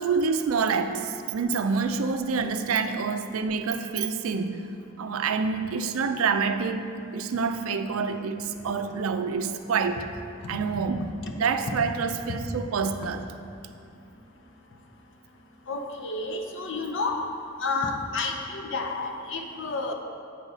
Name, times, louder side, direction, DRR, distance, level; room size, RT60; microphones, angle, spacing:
voice 1, 0.0-4.6 5.0-6.9 7.1-10.1 10.5-13.2, right 5 dB, 70° right, 8 dB, 0.4 m, -27 dB
voice 2, 15.7-17.2 17.6-19.9, left 3 dB, 60° left, 3 dB, 0.7 m, -30 dB
8.2 x 6.0 x 4.0 m, 2.5 s
head